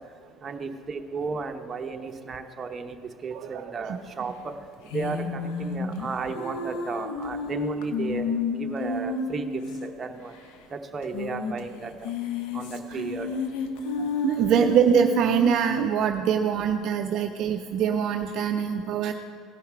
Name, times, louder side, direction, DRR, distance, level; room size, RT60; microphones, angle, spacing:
voice 1, 0.4-4.5 4.9-8.3 8.6-10.3 10.7-11.9 12.5-13.3, right 4 dB, 30° right, 5 dB, 0.9 m, -34 dB
voice 2, 3.3-4.0 12.9-13.0 14.2-19.1, right 8 dB, 55° right, 5 dB, 0.5 m, -24 dB
sound 1, 4.9-9.8 10.0-10.1 10.3-10.4 11.0-11.6 11.9-15.6, left 3 dB, 75° left, 1.0 m, -30 dB
16.5 x 5.6 x 4.6 m, 2.4 s
supercardioid pair, 90°, 0 cm